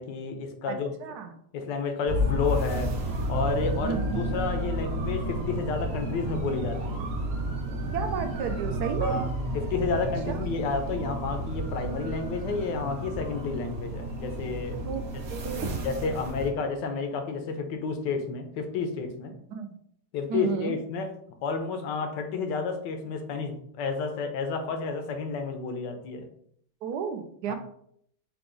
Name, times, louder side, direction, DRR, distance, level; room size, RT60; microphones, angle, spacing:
voice 1, 0.0-0.9 1.5-2.9 3.3-7.0 9.0-9.3 9.5-14.9 15.8-19.3 20.1-21.1 21.4-26.2 27.5-27.6, left 4 dB, 85° left, 6 dB, 1.4 m, -31 dB
voice 2, 0.7-1.3 3.8-4.3 7.9-9.2 10.3-10.4 14.9-15.0 15.3-15.9 19.5-19.7 20.3-20.7 26.8-27.5, right 7 dB, 75° right, 7 dB, 1.1 m, -32 dB
sound 1, 2.1-16.5, right 1 dB, 50° right, 0.9 m, -31 dB
5.8 x 2.4 x 3.8 m, 0.68 s
omnidirectional pair, 1.8 m